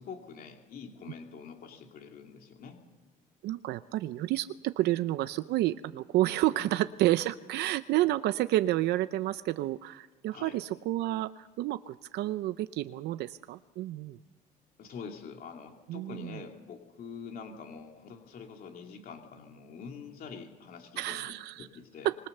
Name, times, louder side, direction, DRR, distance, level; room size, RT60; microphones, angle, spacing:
voice 1, 0.0-2.8 4.8-4.9 6.6-6.7 10.3-10.6 14.8-22.1, left 5 dB, 60° left, 3 dB, 2.6 m, -45 dB
voice 2, 3.4-14.2 15.9-16.4 21.0-21.7 22.0-22.1, right 15 dB, 80° right, 13 dB, 0.6 m, -30 dB
25.5 x 21.0 x 6.7 m, 1.2 s
cardioid pair, 110°, 17 cm